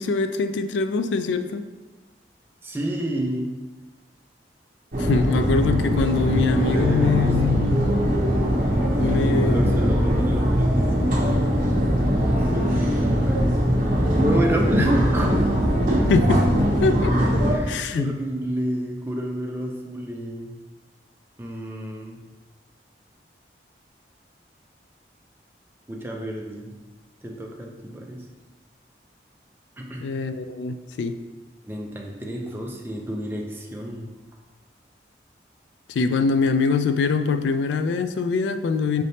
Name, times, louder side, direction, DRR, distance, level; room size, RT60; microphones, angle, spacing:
voice 1, 0.0-1.6 5.0-7.9 8.9-10.0 14.8-14.9 16.1-17.1 17.7-18.1 30.0-31.2 35.9-39.0, left 4 dB, 85° left, 10 dB, 0.3 m, -24 dB
voice 2, 2.6-3.5 6.7-7.7 9.0-11.2 12.2-12.9 13.3-13.5 14.1-15.5 17.5-20.6 21.4-22.2 25.9-26.7 27.2-28.2 29.8-30.1 31.7-34.1, right 1 dB, 10° right, 0 dB, 0.5 m, -30 dB
sound 1, 4.9-17.6, equal, 45° right, 0.8 m, -21 dB
5.2 x 3.3 x 2.7 m, 1.2 s
head